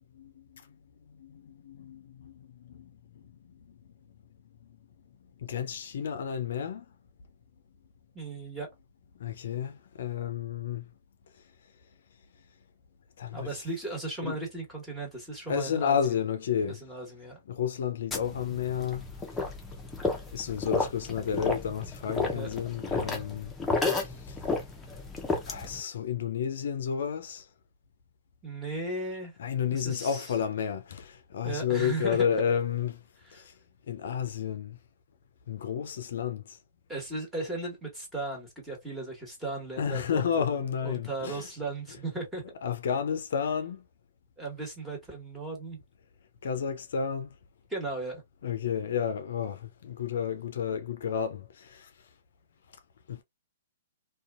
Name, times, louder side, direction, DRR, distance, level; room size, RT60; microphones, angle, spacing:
voice 1, 0.1-0.8 1.1-3.8 5.4-6.9 9.2-10.9 13.2-13.5 14.2-14.4 15.5-16.8 17.5-19.1 20.3-23.5 23.8-24.4 25.5-27.5 29.4-33.0 33.3-33.5 33.9-34.8 35.5-36.6 39.8-41.5 42.6-43.8 46.4-47.3 48.4-51.9 53.1-53.2, left 8 dB, 70° left, 0.5 m, -31 dB
voice 2, 8.1-8.7 13.3-16.0 16.7-17.4 22.3-22.5 28.4-29.3 29.7-30.3 31.4-32.3 33.2-33.5 36.9-42.4 44.4-45.8 47.7-48.2, right 2 dB, 5° right, 1.4 m, -36 dB
sound 1, 18.1-25.8, left 3 dB, 10° left, 0.7 m, -32 dB
2.6 x 2.2 x 2.4 m
hypercardioid pair, 125°, 0 cm